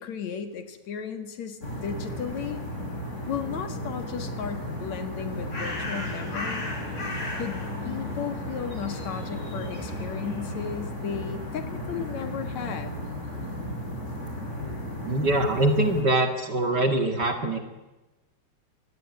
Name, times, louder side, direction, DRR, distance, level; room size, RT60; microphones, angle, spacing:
voice 1, 0.0-2.6 3.3-6.7 7.4-13.0, left 7 dB, 65° left, 8 dB, 3.1 m, -35 dB
sound 1, 1.6-16.0, left 1 dB, 20° left, 5.8 m, -35 dB
Bird, 5.0-11.0, left 2 dB, 40° left, 6.5 m, -38 dB
voice 2, 15.0-17.6, right 1 dB, 40° right, 6 dB, 2.2 m, -23 dB
25.5 x 19.5 x 9.7 m, 1.1 s
omnidirectional pair, 3.4 m